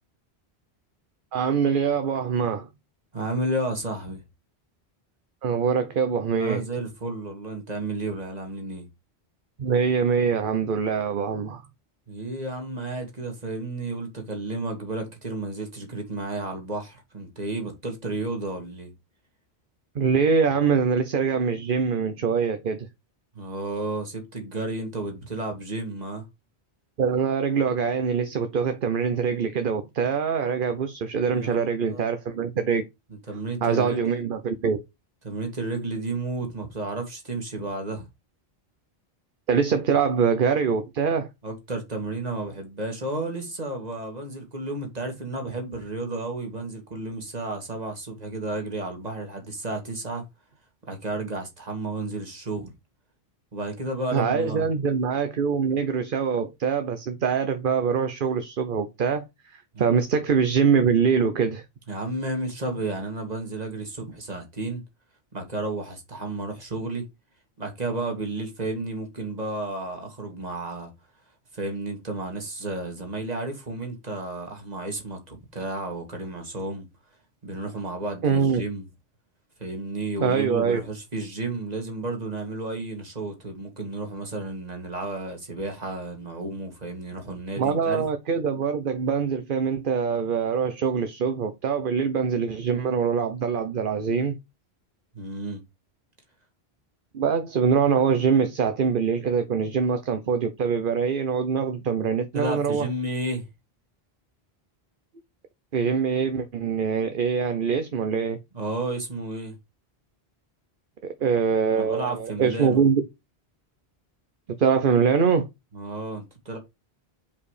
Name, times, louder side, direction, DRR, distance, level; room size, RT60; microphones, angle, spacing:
voice 1, 1.3-2.7 5.4-6.6 9.6-11.6 19.9-22.9 27.0-32.8 33.6-34.8 39.5-41.3 54.1-61.6 78.2-78.6 80.2-80.8 87.6-94.4 97.1-102.9 105.7-108.4 111.0-113.0 114.6-115.4, right 6 dB, 60° right, 0.9 m, -24 dB
voice 2, 3.1-4.2 6.4-8.8 12.1-18.9 23.4-26.3 31.3-32.1 33.3-34.2 35.2-38.1 41.4-50.2 50.8-52.7 53.5-54.6 59.7-59.9 61.9-64.8 65.3-67.1 67.6-70.9 71.5-76.9 77.4-78.9 79.6-88.0 95.1-95.6 102.3-103.5 108.5-109.5 111.7-112.8 115.7-116.6, right 2 dB, 40° right, 2.0 m, -32 dB
5.4 x 4.8 x 4.8 m
omnidirectional pair, 1.0 m